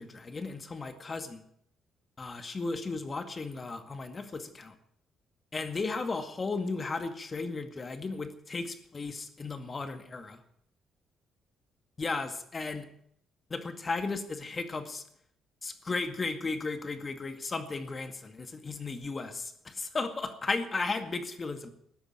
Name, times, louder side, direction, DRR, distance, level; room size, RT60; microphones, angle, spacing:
voice 1, 0.0-1.4 2.2-4.7 5.5-10.4 12.0-12.9 13.5-15.0 15.6-21.7, left 3 dB, 30° left, 8 dB, 2.0 m, -35 dB
14.0 x 10.0 x 8.7 m, 0.67 s
cardioid pair, 90°, 0 cm